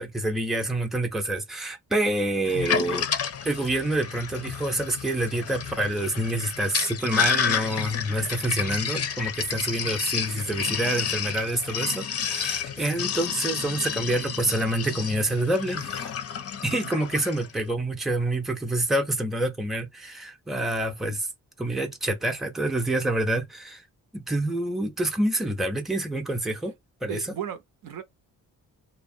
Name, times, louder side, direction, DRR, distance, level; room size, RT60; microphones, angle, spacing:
voice 1, 0.0-3.1 3.4-16.1 16.6-21.3 21.6-23.8 24.1-26.7 27.0-27.2, right 1 dB, ahead, 0.6 m, -27 dB
Sink (filling or washing), 2.5-17.5, left 7 dB, 45° left, 0.5 m, -30 dB
voice 2, 27.0-28.0, right 9 dB, 65° right, 0.6 m, -36 dB
2.7 x 2.0 x 2.6 m
cardioid pair, 75°, 36 cm